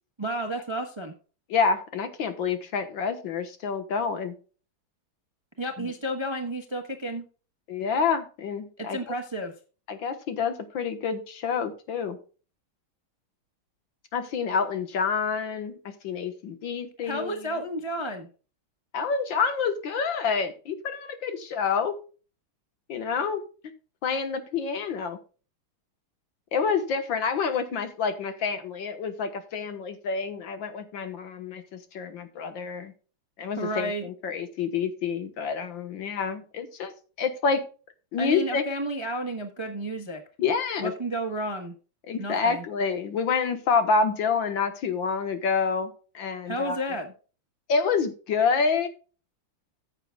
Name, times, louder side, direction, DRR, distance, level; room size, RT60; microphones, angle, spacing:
voice 1, 0.2-1.1 5.6-7.3 8.8-9.5 17.0-18.3 33.6-34.0 38.2-40.2 40.8-41.7 42.2-42.6 46.4-47.1, right 1 dB, 20° right, 5 dB, 0.8 m, -31 dB
voice 2, 1.5-4.4 5.8-5.9 7.7-9.0 9.9-12.2 14.1-17.5 18.9-22.0 22.9-23.4 24.0-25.2 26.5-32.9 33.4-36.9 37.2-37.6 38.1-38.6 40.4-40.9 42.1-46.8 47.7-48.9, left 5 dB, 65° left, 8 dB, 1.9 m, -28 dB
14.5 x 7.5 x 2.3 m, 0.36 s
omnidirectional pair, 2.3 m